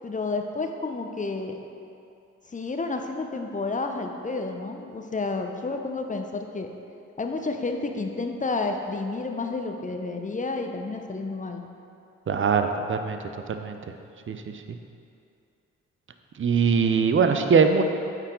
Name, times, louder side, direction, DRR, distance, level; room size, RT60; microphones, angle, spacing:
voice 1, 0.0-1.6 2.5-6.7 7.2-11.6, left 3 dB, 20° left, 4 dB, 0.8 m, -30 dB
voice 2, 12.3-13.2 13.5-13.8 14.3-14.4 16.4-17.8, right 5 dB, 35° right, 7 dB, 0.7 m, -21 dB
8.8 x 4.6 x 3.8 m, 2.6 s
hypercardioid pair, 40°, 34 cm